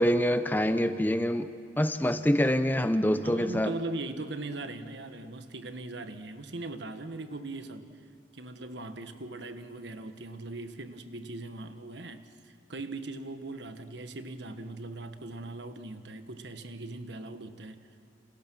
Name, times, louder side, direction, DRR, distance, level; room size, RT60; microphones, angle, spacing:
voice 1, 0.0-1.5 1.8-3.7, equal, 10° left, 11 dB, 0.6 m, -25 dB
voice 2, 3.2-7.9 8.3-17.9, right 2 dB, 65° right, 9 dB, 1.4 m, -40 dB
29.0 x 27.5 x 6.2 m, 2.2 s
head